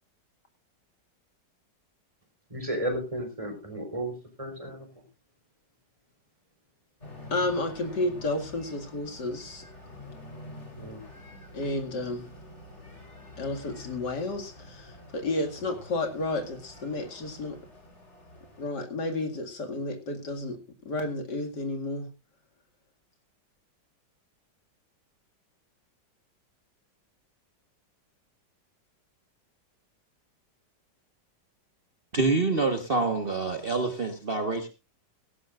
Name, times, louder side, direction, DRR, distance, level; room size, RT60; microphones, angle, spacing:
voice 1, 2.5-5.0 10.8-11.0, right 1 dB, 20° right, 3 dB, 4.0 m, -34 dB
sound 1, 7.0-18.7, left 2 dB, 40° left, 3.8 m, -47 dB
voice 2, 7.3-9.6 11.5-12.3 13.4-17.6 18.6-20.6 20.8-22.1, left 2 dB, 70° left, 5 dB, 2.9 m, -31 dB
voice 3, 32.1-34.7, right 3 dB, 35° right, 5 dB, 1.5 m, -26 dB
18.0 x 15.0 x 2.5 m, 0.29 s
omnidirectional pair, 1.9 m